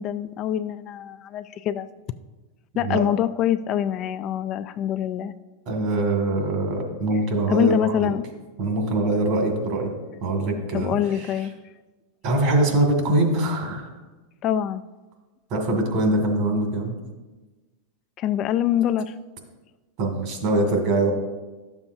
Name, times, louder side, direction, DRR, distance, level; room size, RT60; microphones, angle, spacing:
voice 1, 0.0-1.9 2.7-5.4 7.5-8.2 10.7-11.5 14.4-14.8 18.2-19.1, left 10 dB, 40° left, 12 dB, 0.3 m, -24 dB
voice 2, 5.7-8.1 8.6-9.9 10.2-11.3 12.2-13.9 15.5-16.9 20.0-21.1, right 2 dB, 55° right, 2 dB, 2.1 m, -23 dB
11.5 x 7.0 x 2.7 m, 1.2 s
supercardioid pair, 125°, 0 cm